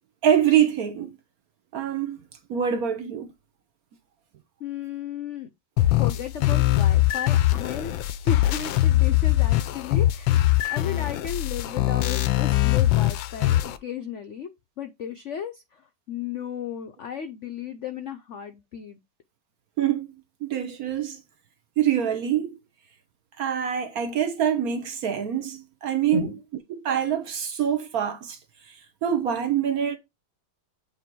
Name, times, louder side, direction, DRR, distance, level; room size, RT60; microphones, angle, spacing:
voice 1, 0.2-1.1 1.7-2.2 2.5-3.3 19.8-20.1 20.4-21.2 21.8-22.6 23.4-26.3 26.7-28.4 28.7-30.0, right 9 dB, 65° right, 1.0 m, -25 dB
voice 2, 4.6-5.5 6.0-10.4 10.7-14.5 14.8-19.0 23.9-24.1 26.1-26.4, left 8 dB, 70° left, 0.7 m, -34 dB
sound 1, 5.8-13.8, left 15 dB, 90° left, 1.4 m, -22 dB
8.4 x 2.8 x 4.5 m
omnidirectional pair, 2.0 m